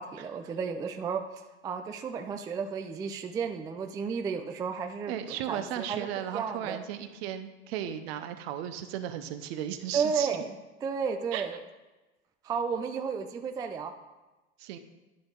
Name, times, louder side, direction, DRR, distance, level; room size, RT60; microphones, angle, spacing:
voice 1, 0.0-6.1 6.3-6.8 9.9-11.6 12.4-13.9, right 6 dB, 10° right, 6 dB, 0.3 m, -33 dB
voice 2, 5.1-10.3 11.3-11.4 14.6-14.8, right 10 dB, 55° right, 9 dB, 0.9 m, -35 dB
10.5 x 5.2 x 3.9 m, 1.1 s
hypercardioid pair, 90°, 36 cm